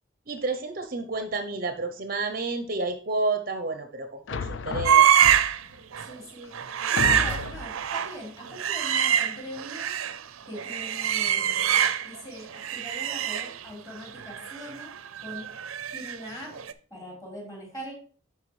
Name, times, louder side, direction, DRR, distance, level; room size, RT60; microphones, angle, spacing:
voice 1, 0.3-5.1, right 3 dB, 45° right, 8 dB, 0.6 m, -30 dB
sound 1, 4.3-5.8 6.4-6.5 7.0-7.8, left 4 dB, 60° left, 0.4 m, -32 dB
sound 2, 4.8-5.6 5.9-6.1 6.5-10.2 10.5-12.2 12.5-16.3 16.5-16.7, right 9 dB, 90° right, 0.5 m, -25 dB
voice 2, 6.1-6.5 6.9-9.9 10.5-14.9 15.2-15.4 15.9-16.5 16.9-17.9, equal, 15° left, -4 dB, 4.1 m, -41 dB
11.0 x 4.8 x 3.2 m, 0.41 s
head